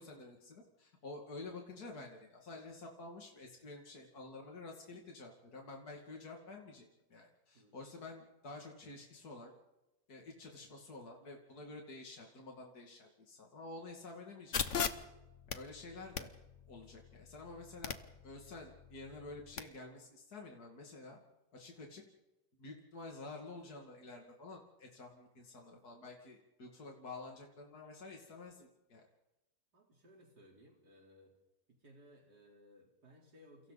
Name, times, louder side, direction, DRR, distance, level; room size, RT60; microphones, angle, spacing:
voice 1, 0.0-9.5 10.1-14.8 15.5-16.3 16.7-18.0 18.2-21.2 21.5-22.0 22.6-29.1, left 3 dB, 70° left, 0 dB, 2.9 m, -50 dB
sound 1, 14.5-19.6, left 7 dB, 55° left, 1.4 m, -41 dB
voice 2, 29.7-31.3 31.7-33.7, equal, 85° right, -1 dB, 4.6 m, -61 dB
30.0 x 29.0 x 4.1 m, 1.0 s
omnidirectional pair, 1.7 m